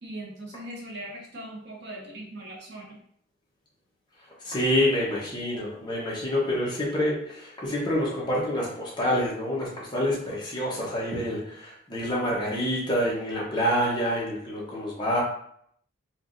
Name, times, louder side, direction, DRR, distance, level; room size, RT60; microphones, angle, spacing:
voice 1, 0.0-3.0, right 1 dB, 55° right, -1 dB, 0.9 m, -40 dB
voice 2, 4.4-15.2, equal, 20° left, -5 dB, 1.0 m, -27 dB
4.6 x 2.5 x 2.6 m, 0.66 s
head